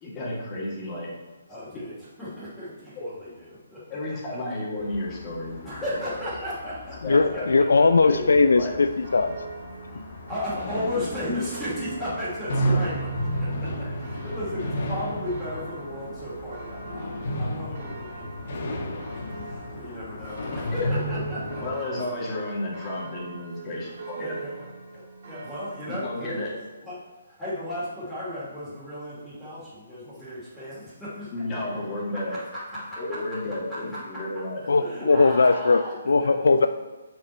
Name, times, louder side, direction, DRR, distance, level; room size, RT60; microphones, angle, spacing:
voice 1, 0.0-1.1 3.0-3.1 3.9-5.9 7.0-7.5 8.0-8.8 9.9-10.1 13.8-14.1 14.5-14.6 20.7-20.9 21.6-24.3 25.9-26.5 31.3-32.4 33.0-34.6 36.5-36.6, left 1 dB, 25° left, -5 dB, 2.3 m, -33 dB
voice 2, 1.5-4.2 5.6-8.1 9.8-10.0 10.3-21.8 24.1-26.5 26.8-34.4 34.8-36.5, left 1 dB, 5° left, -13 dB, 2.6 m, -35 dB
sound 1, 4.8-21.7, equal, 50° left, 1.2 m, -33 dB
voice 3, 7.0-9.3 34.7-36.7, left 4 dB, 70° left, 9 dB, 0.4 m, -19 dB
sound 2, 8.3-26.3, right 4 dB, 55° right, 2.0 m, -42 dB
7.1 x 5.1 x 4.4 m, 1.2 s
figure-of-eight pair, 140°, 0 cm